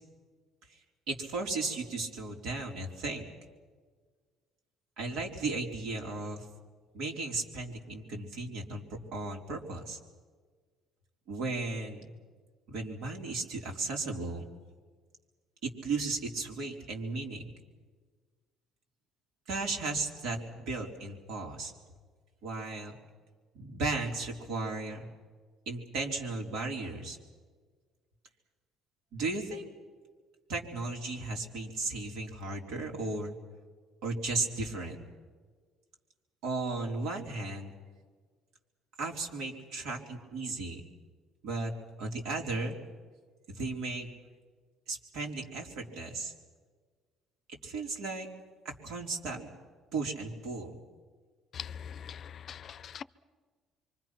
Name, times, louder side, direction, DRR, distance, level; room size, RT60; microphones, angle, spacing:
voice 1, 1.1-3.2 5.0-6.5 6.9-8.8 9.1-10.0 11.3-12.1 12.7-14.5 15.6-17.4 19.5-21.7 22.4-22.9 23.5-25.1 25.7-27.2 29.1-29.7 30.5-33.3 34.0-35.0 36.4-37.7 39.0-40.8 41.4-41.7 42.0-42.8 43.5-44.1 44.9-46.3 47.5-48.3 48.6-49.5 49.9-50.7, right 3 dB, 75° right, 1 dB, 3.9 m, -35 dB
voice 2, 51.5-53.0, left 8 dB, 45° left, 17 dB, 0.6 m, -42 dB
27.0 x 24.5 x 6.0 m, 1.5 s
cardioid pair, 130°, 0 cm